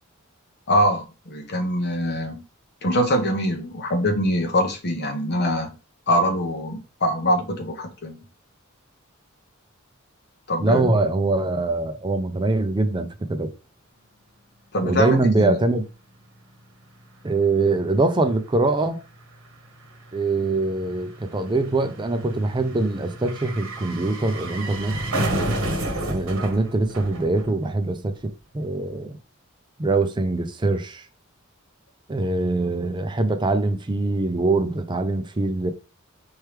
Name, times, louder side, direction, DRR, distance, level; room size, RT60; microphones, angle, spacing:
voice 1, 0.7-2.4 2.8-5.8 6.1-8.2 10.5-10.9 14.7-15.6, equal, 50° left, 1.0 m, -23 dB
voice 2, 10.6-13.5 14.8-15.8 17.2-19.0 20.1-25.0 26.1-29.2 29.8-31.0 32.1-35.7, right 2 dB, 20° right, 0.5 m, -23 dB
sound 1, 17.2-17.3 17.5-27.9 28.1-28.2, right 1 dB, 75° right, 1.1 m, -31 dB
4.4 x 3.2 x 3.3 m
head